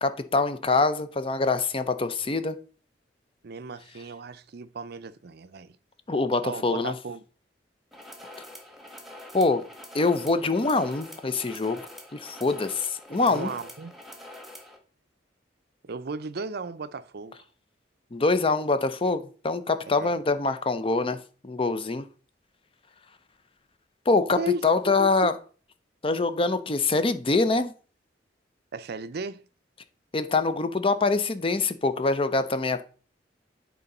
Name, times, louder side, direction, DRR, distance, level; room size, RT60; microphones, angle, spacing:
voice 1, 0.0-2.6 6.1-6.9 9.3-9.6 9.9-11.8 12.1-13.5 18.1-21.2 21.4-22.1 24.1-25.3 26.0-27.7 30.1-32.8, left 3 dB, 30° left, 0.6 m, -24 dB
voice 2, 3.4-5.7 6.4-7.2 13.3-13.9 15.8-17.5 20.0-20.1 24.4-25.3 28.7-29.4, right 4 dB, 60° right, 0.5 m, -35 dB
sound 1, 7.9-14.8, left 1 dB, ahead, 1.4 m, -45 dB
8.3 x 3.8 x 5.3 m
head